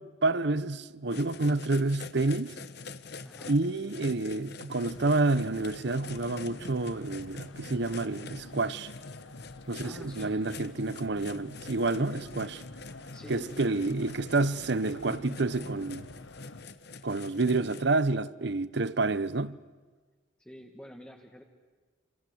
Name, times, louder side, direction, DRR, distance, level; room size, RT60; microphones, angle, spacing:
voice 1, 0.0-2.6 3.4-8.9 9.7-12.6 13.3-16.1 17.0-19.6, right 2 dB, 60° right, 0.9 m, -29 dB
sound 1, 1.1-17.8, left 4 dB, 60° left, 1.2 m, -46 dB
voice 2, 3.2-3.6 9.8-10.4 13.1-14.1 20.4-21.4, equal, 5° left, 1.6 m, -47 dB
sound 2, 4.7-16.6, left 2 dB, 80° left, 1.5 m, -47 dB
27.5 x 27.0 x 8.0 m
head